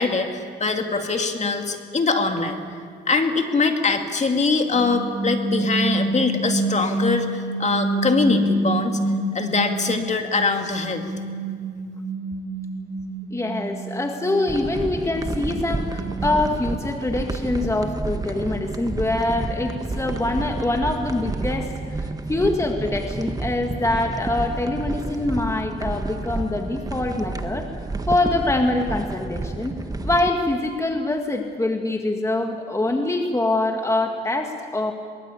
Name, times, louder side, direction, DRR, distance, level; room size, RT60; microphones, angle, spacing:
voice 1, 0.0-2.6 3.1-9.0 9.3-11.1, left 4 dB, 35° left, 5 dB, 2.5 m, -23 dB
sound 1, 4.7-10.0 10.3-16.6, right 2 dB, 55° right, 5.9 m, -28 dB
voice 2, 13.3-27.7 28.1-29.8 30.0-34.9, left 2 dB, 15° left, 3 dB, 1.9 m, -24 dB
sound 2, 14.5-30.3, right 3 dB, 20° right, 1.5 m, -30 dB
23.0 x 21.0 x 8.5 m, 2.1 s
cardioid pair, 90°, 20 cm